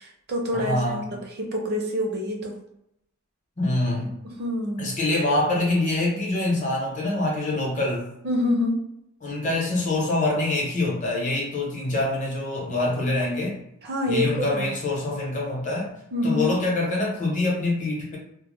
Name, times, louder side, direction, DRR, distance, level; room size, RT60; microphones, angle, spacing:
voice 1, 0.0-2.6 4.2-4.9 8.2-8.9 13.8-14.7 16.1-16.5, left 1 dB, 50° right, 1 dB, 0.5 m, -27 dB
voice 2, 0.5-1.0 3.6-4.2 4.8-8.1 9.2-13.6 14.1-15.9 16.2-18.2, left 2 dB, 35° left, -3 dB, 0.8 m, -25 dB
2.1 x 2.0 x 3.0 m, 0.80 s
head